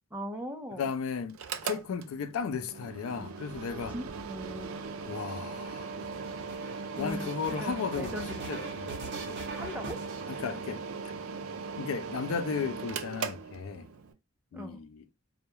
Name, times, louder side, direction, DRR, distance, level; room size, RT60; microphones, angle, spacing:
voice 1, 0.1-0.9 3.9-4.8 7.0-8.6 9.5-10.0 14.5-14.8, left 1 dB, 10° right, 0.4 m, -39 dB
voice 2, 0.8-1.4 1.6-3.9 5.1-5.9 7.0-8.2 8.5-8.9 9.3-9.4 10.3-10.8 11.8-13.9 14.5-15.0, left 6 dB, 85° left, 0.4 m, -35 dB
Mechanical fan, 1.3-14.1, right 5 dB, 80° right, 0.4 m, -39 dB
sound 1, 3.1-11.1 11.9-12.8, right 3 dB, 55° right, 0.7 m, -45 dB
2.2 x 2.1 x 2.9 m
head